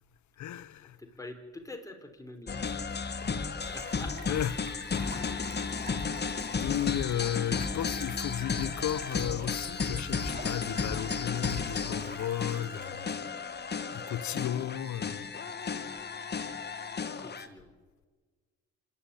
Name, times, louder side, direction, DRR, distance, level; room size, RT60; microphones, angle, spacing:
voice 1, 0.4-1.0 3.2-3.8 4.3-4.7 5.0-5.6 6.6-13.2 13.9-15.3, left 11 dB, 70° left, 0.9 m, -34 dB
voice 2, 1.0-2.6 3.7-4.1 17.2-17.7, left 2 dB, 10° left, 4.0 m, -45 dB
sound 1, 2.5-17.5, left 5 dB, 35° left, 1.5 m, -34 dB
sound 2, 3.6-12.8, right 2 dB, 30° right, 4.3 m, -48 dB
26.5 x 11.0 x 9.8 m
cardioid pair, 90°, 30 cm